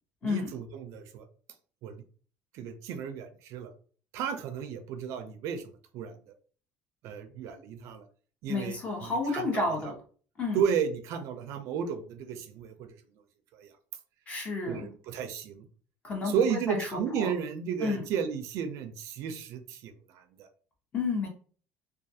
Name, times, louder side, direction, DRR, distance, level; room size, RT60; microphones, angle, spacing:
voice 1, 0.2-1.3 1.8-2.0 2.5-3.7 4.1-6.2 7.0-8.0 8.4-9.9 10.5-13.0 13.5-13.7 14.7-15.6 16.2-20.5, right 7 dB, 65° right, 8 dB, 0.4 m, -33 dB
voice 2, 8.5-9.9 10.4-10.6 14.3-14.9 16.0-17.3 17.8-18.0 20.9-21.3, left 3 dB, 25° left, 1 dB, 0.8 m, -31 dB
2.3 x 2.3 x 2.7 m, 0.42 s
cardioid pair, 145°, 5 cm